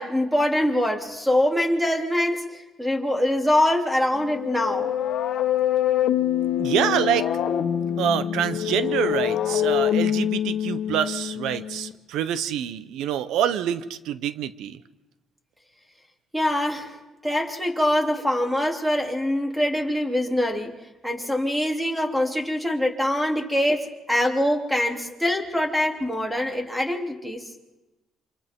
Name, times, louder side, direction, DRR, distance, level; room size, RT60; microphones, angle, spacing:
voice 1, 0.0-4.9 16.3-16.9 17.2-20.7 21.0-27.4, left 1 dB, 5° right, 2 dB, 3.2 m, -24 dB
sound 1, 4.1-11.9, left 10 dB, 75° left, 1.4 m, -25 dB
voice 2, 6.6-7.3 8.0-14.8, right 10 dB, 90° right, 14 dB, 0.9 m, -26 dB
28.5 x 26.5 x 3.8 m, 1.1 s
cardioid pair, 90°, 0 cm